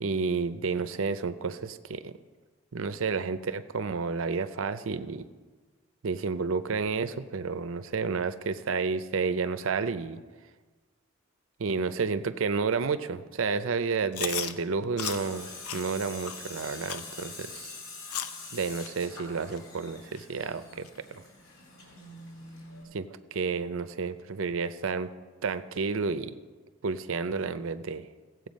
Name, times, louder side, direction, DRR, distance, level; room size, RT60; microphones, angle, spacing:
voice 1, 0.0-2.1 2.7-5.3 6.0-10.2 11.6-17.7 18.5-21.2 22.9-25.1 25.4-26.4 26.8-28.1, right 4 dB, 65° right, 12 dB, 0.5 m, -31 dB
Chewing mastication, 14.1-14.5 15.0-15.2 15.6-15.8 16.2-16.4 16.9-17.1 17.6-17.7 18.1-18.4 18.8-18.9 19.5-19.6 20.2-20.3 20.8-20.9, left 9 dB, 90° left, 0.7 m, -34 dB
Tools, 15.0-22.8, left 3 dB, 70° left, 3.7 m, -44 dB
16.5 x 7.9 x 5.2 m, 1.4 s
head